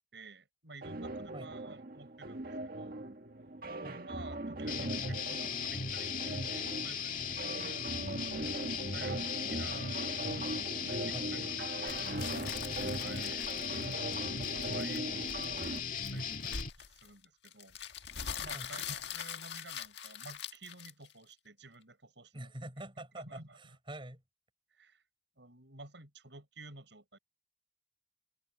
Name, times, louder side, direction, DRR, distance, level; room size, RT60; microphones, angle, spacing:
voice 1, 0.1-3.0 3.8-7.7 8.2-8.5 8.9-9.9 10.4-10.7 11.1-12.2 13.0-17.8 18.4-22.5 23.2-23.7 24.7-25.0 25.4-27.2, right 3 dB, 85° right, 6.1 m, -52 dB
sound 1, 0.8-15.8, right 2 dB, 55° right, 1.7 m, -40 dB
sound 2, 4.7-16.7, left 6 dB, 50° left, 2.1 m, -38 dB
sound 3, 11.9-21.3, left 7 dB, 75° left, 1.6 m, -43 dB
voice 2, 22.3-24.2, right 1 dB, 30° right, 7.0 m, -46 dB
head